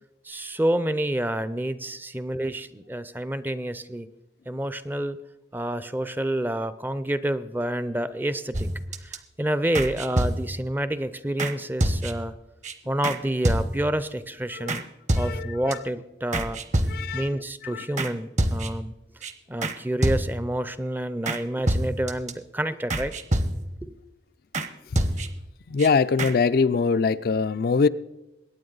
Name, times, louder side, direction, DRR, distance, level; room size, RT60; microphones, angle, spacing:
voice 1, 0.2-4.1 4.5-5.2 5.5-8.7 9.0-12.3 12.9-14.8 15.2-18.9 19.5-23.1 23.8-24.0, right 1 dB, 10° right, 0.5 m, -28 dB
sound 1, 8.5-9.2 9.7-10.7 11.4-11.5 11.8-12.3 12.6-12.7 13.0-13.2 13.4-14.0 14.7-14.8 15.1-15.7 16.3-17.3 18.0-18.1 18.4-18.9 19.2-19.3 19.6-19.8 20.0-20.6 21.3-21.4 21.7-22.3 22.9-23.8 24.5-24.7 25.0-25.5 25.8-25.9 26.2-26.3, right 1 dB, 40° right, 0.9 m, -26 dB
voice 2, 15.1-15.8 16.9-17.9 24.9-25.0 25.7-27.9, left 5 dB, 55° left, 0.4 m, -23 dB
22.5 x 9.5 x 3.9 m
head